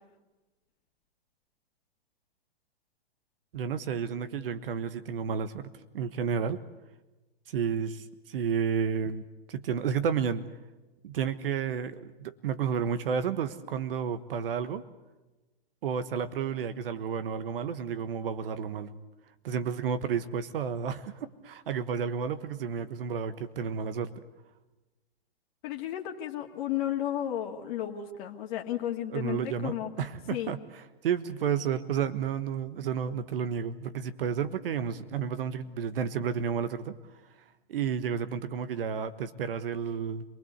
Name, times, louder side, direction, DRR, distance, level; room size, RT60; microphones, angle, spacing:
voice 1, 3.5-6.6 7.5-10.4 11.0-14.8 15.8-18.9 19.4-24.1 29.1-37.0 37.7-40.2, right 7 dB, 65° right, 12 dB, 1.4 m, -31 dB
voice 2, 25.6-29.9 30.3-30.5, left 11 dB, 50° left, 1 dB, 2.1 m, -33 dB
27.0 x 20.5 x 8.1 m, 1.1 s
hypercardioid pair, 120°, 31 cm